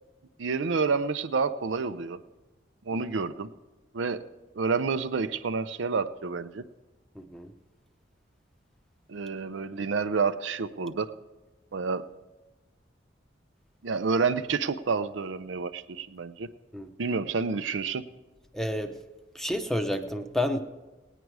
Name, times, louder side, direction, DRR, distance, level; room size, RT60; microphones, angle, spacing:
voice 1, 0.4-2.2 2.9-3.5 3.9-4.2 4.6-6.6 9.1-11.1 11.7-12.0 13.8-16.5 17.0-18.1, right 4 dB, 85° right, 11 dB, 0.6 m, -29 dB
voice 2, 7.2-7.5 16.7-16.9 18.5-18.9 19.3-20.6, left 1 dB, ahead, 7 dB, 0.7 m, -30 dB
18.5 x 9.1 x 4.8 m, 1.1 s
head